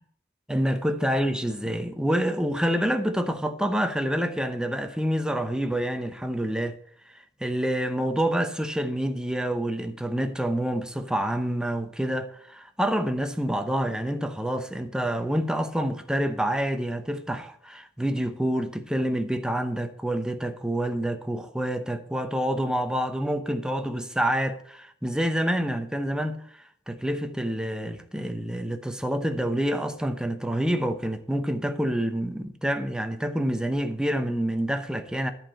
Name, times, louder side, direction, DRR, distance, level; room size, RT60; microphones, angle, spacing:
voice 1, 0.5-6.8 7.4-35.3, equal, 5° right, 0.8 m, -27 dB
11.0 x 4.4 x 7.7 m
head